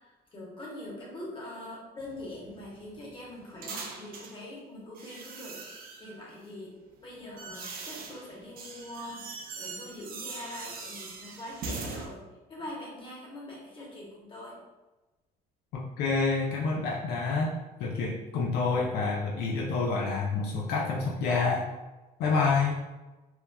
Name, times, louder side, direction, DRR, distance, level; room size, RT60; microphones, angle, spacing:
voice 1, 0.3-6.7 7.0-12.2 12.5-14.6, left 1 dB, 30° left, -4 dB, 1.0 m, -43 dB
sound 1, 2.0-4.4 5.0-6.2 6.9-12.1, right 4 dB, 60° right, 0.5 m, -41 dB
voice 2, 15.7-21.7 22.2-22.8, left 4 dB, 75° left, -2 dB, 0.4 m, -28 dB
2.9 x 2.2 x 2.2 m, 1.1 s
cardioid pair, 110°, 17 cm